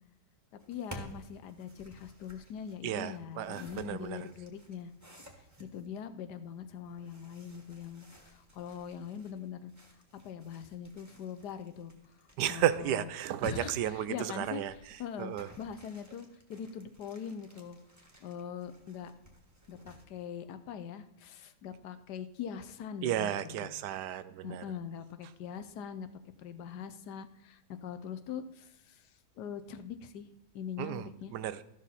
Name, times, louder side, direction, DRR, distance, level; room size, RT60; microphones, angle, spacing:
sound 1, 0.6-5.9 6.8-20.0, right 1 dB, 10° right, 1.5 m, -55 dB
voice 1, 0.7-4.9 5.6-9.7 10.2-11.9 12.5-13.1 13.4-14.6 15.0-17.8 18.2-19.1 19.7-23.7 24.4-26.1 26.4-29.1 29.4-30.3 30.5-31.3, left 7 dB, 75° left, 11 dB, 1.3 m, -42 dB
voice 2, 2.8-4.3 12.4-15.5 23.0-24.6 30.8-31.6, right 11 dB, 80° right, 14 dB, 1.2 m, -33 dB
13.0 x 6.3 x 4.2 m, 0.86 s
omnidirectional pair, 1.8 m